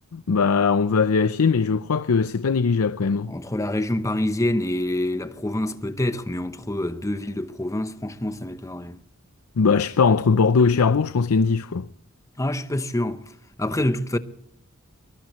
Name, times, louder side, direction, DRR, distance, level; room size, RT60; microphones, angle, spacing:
voice 1, 0.1-3.3 9.6-11.9, left 5 dB, 80° left, 0.5 m, -20 dB
voice 2, 3.3-9.0 12.4-13.3 13.6-14.2, left 1 dB, 15° left, 0.8 m, -26 dB
23.5 x 20.0 x 3.1 m
head